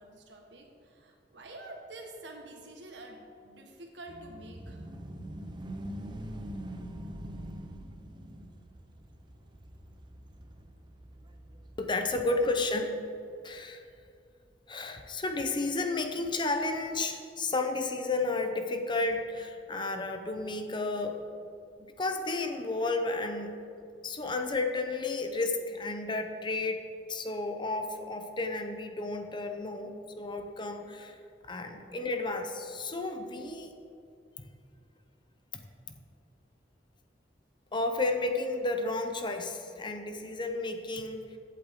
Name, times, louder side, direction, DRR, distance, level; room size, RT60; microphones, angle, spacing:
voice 1, 0.0-4.9 31.6-31.8, right 2 dB, 80° right, 1 dB, 1.6 m, -48 dB
sound 1, 4.1-12.9, right 1 dB, 25° right, 0.8 m, -44 dB
voice 2, 11.8-13.0 13.4-13.8 14.7-21.2 21.8-23.6 24.0-31.2 31.4-33.7 35.5-35.6 37.7-41.4, left 2 dB, 25° left, 5 dB, 0.8 m, -32 dB
15.5 x 8.4 x 3.7 m, 2.4 s
head